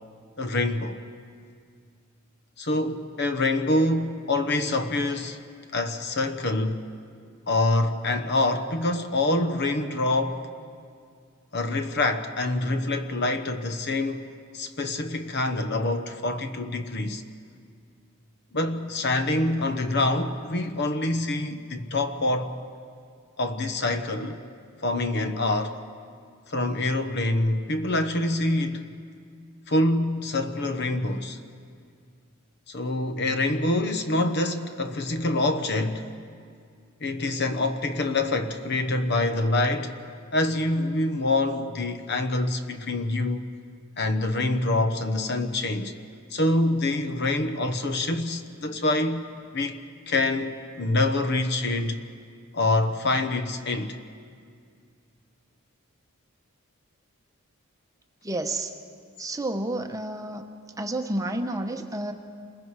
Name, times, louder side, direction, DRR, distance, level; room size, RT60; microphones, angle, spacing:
voice 1, 0.4-1.0 2.6-5.4 5.7-6.9 7.5-10.5 11.5-14.2 14.5-17.2 18.5-22.6 23.4-24.4 24.8-25.8 26.5-28.9 29.7-31.4 32.7-36.1 37.0-40.0 40.3-43.4 44.0-46.0 46.3-49.3 49.5-49.8 50.1-52.0 52.5-54.0, left 2 dB, 50° left, 1.0 m, -26 dB
voice 2, 58.2-58.7 59.2-60.4 60.8-62.1, right 1 dB, 15° right, 0.9 m, -30 dB
28.5 x 21.5 x 4.8 m
head